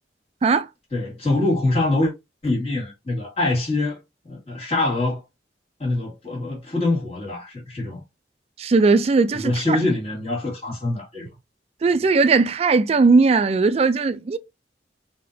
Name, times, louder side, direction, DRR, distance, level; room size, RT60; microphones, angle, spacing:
voice 1, 0.9-2.1 2.4-4.0 4.2-5.2 5.8-8.0 9.3-11.3, left 2 dB, 35° left, 2.0 m, -24 dB
voice 2, 8.6-9.8 11.8-14.4, right 4 dB, 35° right, 0.3 m, -18 dB
4.1 x 2.8 x 2.6 m
head